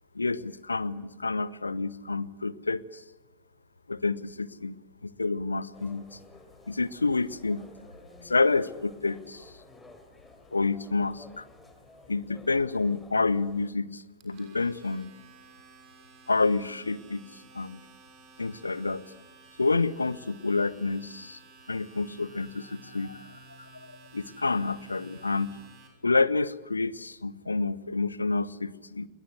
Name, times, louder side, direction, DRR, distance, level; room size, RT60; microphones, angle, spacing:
voice 1, 0.1-3.0 3.9-4.8 5.0-6.2 6.7-7.6 8.2-9.4 10.5-11.4 12.1-15.1 16.3-17.2 17.5-17.8 18.4-19.0 19.6-21.4 21.7-25.5 26.0-29.1, left 3 dB, 80° left, 20 dB, 0.9 m, -29 dB
sound 1, 5.7-13.7, left 2 dB, 10° left, 3.8 m, -53 dB
Domestic sounds home sounds, 14.2-25.9, right 4 dB, 40° right, 6.6 m, -54 dB
28.5 x 21.5 x 7.9 m, 1.1 s
figure-of-eight pair, 90°, 0 cm